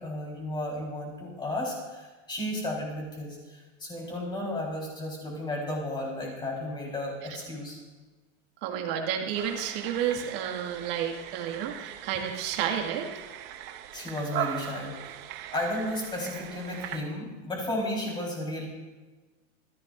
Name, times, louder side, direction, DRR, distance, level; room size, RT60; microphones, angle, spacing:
voice 1, 0.0-7.8 13.9-15.2 15.5-18.7, left 1 dB, 10° left, -2 dB, 4.4 m, -33 dB
voice 2, 8.6-13.1, right 9 dB, 45° right, 2 dB, 2.2 m, -31 dB
sound 1, 9.3-17.0, right 11 dB, 25° right, 0.7 m, -39 dB
23.5 x 15.5 x 2.6 m, 1.2 s
supercardioid pair, 165°, 40 cm